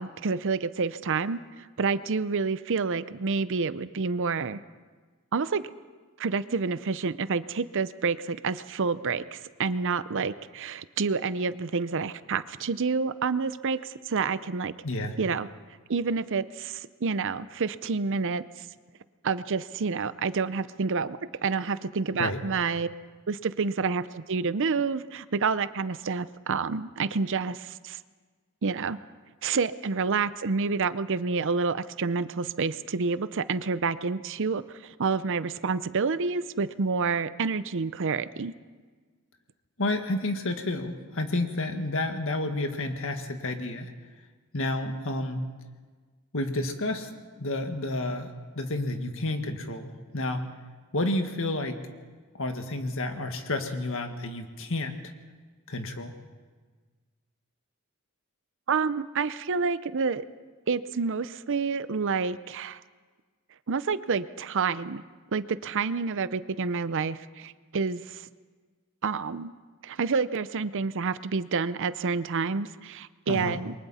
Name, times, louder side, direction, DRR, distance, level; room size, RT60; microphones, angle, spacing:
voice 1, 0.0-4.6 5.3-5.6 6.2-14.7 15.2-15.5 15.9-18.7 19.2-22.9 23.3-28.0 28.6-29.0 29.4-38.5 58.7-60.2 60.7-62.8 63.7-65.0 65.3-68.3 69.0-69.5 69.8-73.7, right 4 dB, 60° right, 14 dB, 0.6 m, -28 dB
voice 2, 14.8-15.1 22.2-22.4 39.8-43.9 44.5-45.5 46.3-47.1 47.4-48.3 48.5-50.5 50.9-51.8 52.3-55.1 55.7-56.1 73.3-73.6, left 2 dB, 65° left, 6 dB, 1.8 m, -30 dB
28.0 x 23.0 x 4.3 m, 1.4 s
head